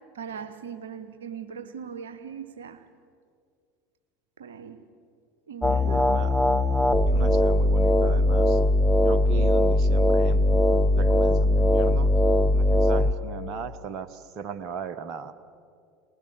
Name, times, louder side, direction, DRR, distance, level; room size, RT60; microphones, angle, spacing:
voice 1, 0.1-2.8 4.4-4.8 5.5-6.2, right 7 dB, 70° right, 9 dB, 0.9 m, -39 dB
sound 1, 5.6-13.1, left 1 dB, 5° left, 0.8 m, -20 dB
voice 2, 5.9-6.4 7.1-8.6 9.0-10.5 10.9-12.1 12.5-15.3, right 7 dB, 40° right, 10 dB, 1.0 m, -37 dB
23.0 x 20.0 x 6.8 m, 2.2 s
figure-of-eight pair, 75°, 0 cm